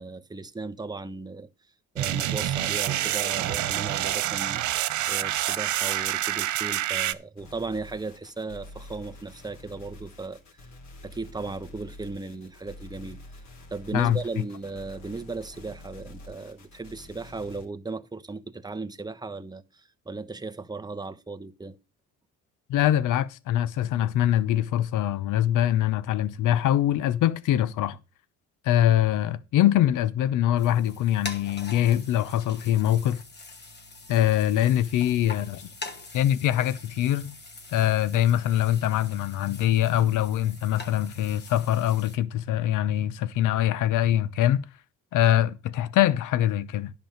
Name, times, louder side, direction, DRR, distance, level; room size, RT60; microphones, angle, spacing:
voice 1, 0.0-1.5 1.9-4.6 5.1-10.4 11.0-13.2 13.7-21.8, right 3 dB, 15° right, 1.0 m, -36 dB
sound 1, 2.0-7.1, right 13 dB, 70° right, 0.7 m, -27 dB
sound 2, 7.4-17.7, left 1 dB, 65° left, 3.3 m, -47 dB
voice 2, 22.7-28.0 28.6-33.2 34.1-35.6 36.1-37.4 37.7-44.6 45.1-46.9, left 12 dB, 85° left, 0.8 m, -23 dB
sound 3, 30.6-42.2, left 3 dB, 35° left, 2.1 m, -44 dB
10.5 x 5.5 x 6.4 m
cardioid pair, 90°, 30 cm